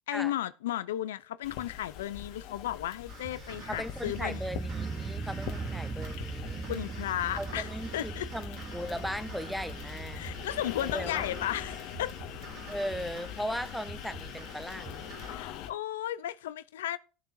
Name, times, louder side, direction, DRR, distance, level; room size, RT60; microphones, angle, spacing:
voice 1, 0.1-4.5 6.7-8.3 10.2-12.2 15.2-17.0, left 12 dB, 90° left, 0.4 m, -34 dB
sound 1, 1.4-15.7, left 10 dB, 65° left, 1.5 m, -43 dB
sound 2, 3.1-15.4, right 3 dB, 50° right, 3.7 m, -47 dB
sound 3, 3.5-11.7, right 4 dB, 25° right, 0.8 m, -40 dB
voice 2, 3.7-6.7 7.4-10.2 10.9-11.3 12.7-15.0, equal, ahead, 0.9 m, -37 dB
17.5 x 7.1 x 2.6 m
supercardioid pair, 105°, 0 cm